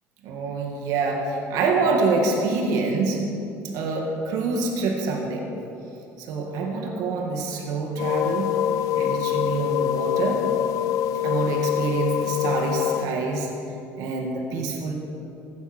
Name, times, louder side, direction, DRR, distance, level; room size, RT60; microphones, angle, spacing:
voice 1, 0.2-3.2 3.7-5.5 6.2-8.6 8.9-10.4 11.2-13.5 14.0-14.9, right 3 dB, 75° right, 1 dB, 2.2 m, -26 dB
sound 1, 8.0-13.1, left 10 dB, 65° left, 0.6 m, -25 dB
15.5 x 12.0 x 4.5 m, 2.7 s
cardioid pair, 100°, 6 cm